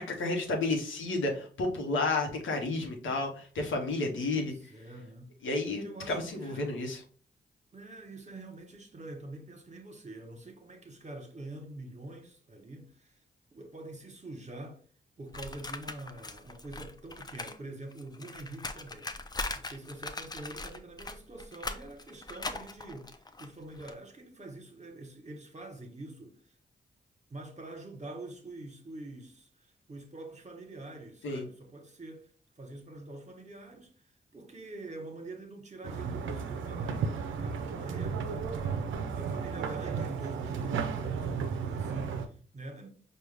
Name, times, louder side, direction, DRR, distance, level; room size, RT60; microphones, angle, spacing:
voice 1, 0.0-4.5 5.4-7.0 31.2-31.4, left 2 dB, 85° left, 0.9 m, -31 dB
voice 2, 4.3-5.3 5.8-6.8 7.7-13.2 13.5-14.8 15.2-19.2 19.5-26.4 27.3-32.3 32.6-42.9, right 2 dB, 35° right, 1.1 m, -45 dB
sound 1, 15.3-17.6 17.8-23.9, left 2 dB, 20° left, 0.4 m, -40 dB
sound 2, 35.8-42.3, right 6 dB, 85° right, 0.4 m, -34 dB
4.7 x 2.3 x 3.3 m
supercardioid pair, 40°, 20 cm